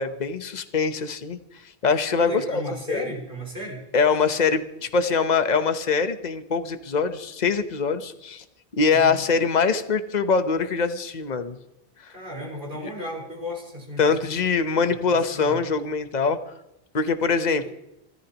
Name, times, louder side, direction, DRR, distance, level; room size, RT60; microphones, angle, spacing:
voice 1, 0.0-1.4 1.8-2.6 2.9-3.0 3.9-8.4 8.7-11.6 14.0-16.4 16.9-17.7, left 5 dB, 45° left, 9 dB, 1.1 m, -23 dB
voice 2, 2.2-3.8 8.9-9.2 12.1-14.4 15.1-15.6 17.6-17.7, left 1 dB, 65° right, -2 dB, 6.2 m, -35 dB
29.0 x 14.0 x 3.0 m, 0.84 s
omnidirectional pair, 1.0 m